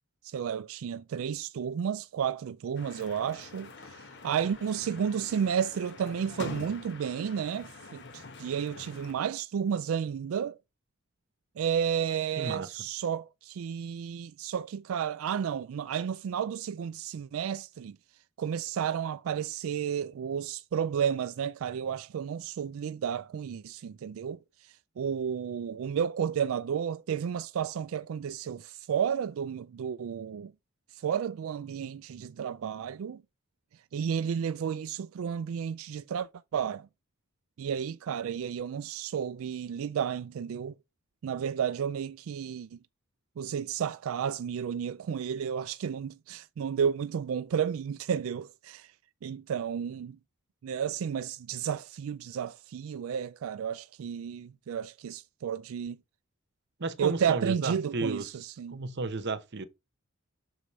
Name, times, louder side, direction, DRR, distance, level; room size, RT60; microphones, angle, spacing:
voice 1, 0.2-10.6 11.6-18.0 18.4-30.5 30.9-33.2 33.9-36.9 37.6-40.8 41.2-42.8 43.4-48.9 49.2-50.2 50.6-56.0 57.0-58.8, right 8 dB, 75° right, 0.3 m, -32 dB
sound 1, 2.8-9.1, left 3 dB, 55° left, 1.3 m, -45 dB
voice 2, 12.4-12.9 56.8-59.7, right 3 dB, 55° right, 0.9 m, -34 dB
6.3 x 4.7 x 5.5 m
head